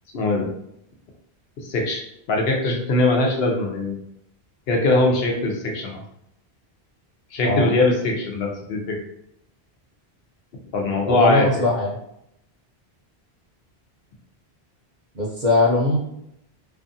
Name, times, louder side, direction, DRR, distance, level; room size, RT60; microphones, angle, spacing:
voice 1, 0.1-0.5 1.7-2.0 2.3-4.0 4.7-6.0 7.3-9.0 10.7-11.6, left 2 dB, 70° left, 0 dB, 0.9 m, -21 dB
voice 2, 11.1-12.0 15.1-16.0, left 2 dB, 50° right, -5 dB, 0.7 m, -20 dB
2.6 x 2.4 x 2.6 m, 0.78 s
omnidirectional pair, 1.1 m